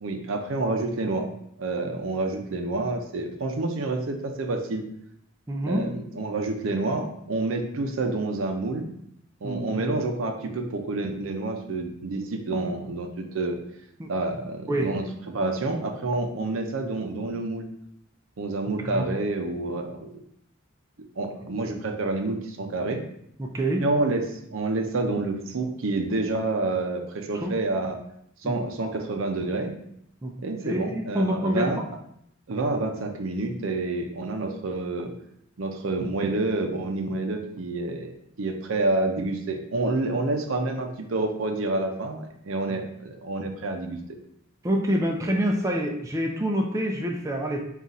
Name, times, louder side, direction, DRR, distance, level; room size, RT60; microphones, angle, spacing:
voice 1, 0.0-1.3 1.6-4.8 5.6-8.9 9.4-13.6 14.1-17.7 18.4-20.2 21.2-23.0 23.8-28.0 28.4-29.7 30.4-31.9 32.5-35.1 35.6-38.1 38.4-44.0, right 2 dB, 70° right, 5 dB, 0.5 m, -28 dB
voice 2, 5.5-5.9 9.4-9.8 14.0-14.1 14.7-14.9 18.8-19.1 23.4-23.8 27.4-27.5 28.4-28.5 30.2-30.3 30.6-31.7 42.7-42.8 44.6-47.7, equal, 15° right, 1 dB, 0.3 m, -26 dB
3.8 x 2.4 x 4.1 m, 0.72 s
head